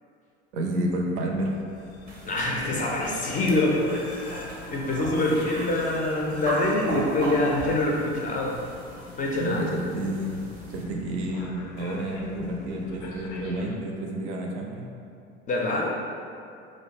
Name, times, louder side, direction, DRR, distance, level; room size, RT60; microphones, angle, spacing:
voice 1, 0.5-1.5 5.3-5.4 9.4-10.5 10.7-14.9, right 1 dB, 75° right, 0 dB, 0.5 m, -30 dB
sound 1, 1.3-13.8, left 3 dB, 80° left, 0.5 m, -43 dB
sound 2, 2.1-10.8, right 2 dB, 25° right, 0.5 m, -38 dB
voice 2, 2.2-4.0 4.7-8.5 9.2-9.6 15.5-15.9, left 2 dB, 25° left, -2 dB, 0.4 m, -25 dB
2.5 x 2.1 x 2.9 m, 2.5 s
hypercardioid pair, 70°, 34 cm